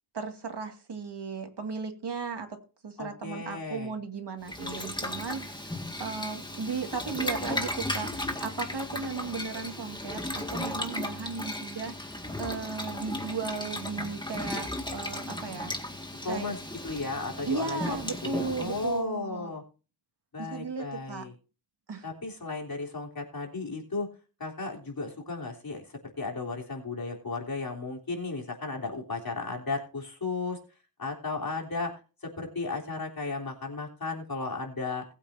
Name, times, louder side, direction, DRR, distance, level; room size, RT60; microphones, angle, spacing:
voice 1, 0.1-5.6 6.0-15.7 16.3-16.5 17.4-19.5 20.4-21.2 21.9-22.1, right 4 dB, 80° right, 4 dB, 2.2 m, -36 dB
voice 2, 3.0-3.9 16.2-16.6 16.8-18.0 18.2-19.6 20.3-21.3 22.0-24.1 24.4-30.6 31.0-31.9 32.2-35.1, left 3 dB, 60° left, -1 dB, 3.7 m, -34 dB
Boiling, 4.4-19.0, left 1 dB, 10° left, 2.0 m, -36 dB
20.0 x 8.4 x 2.8 m, 0.34 s
wide cardioid pair, 85°, 41 cm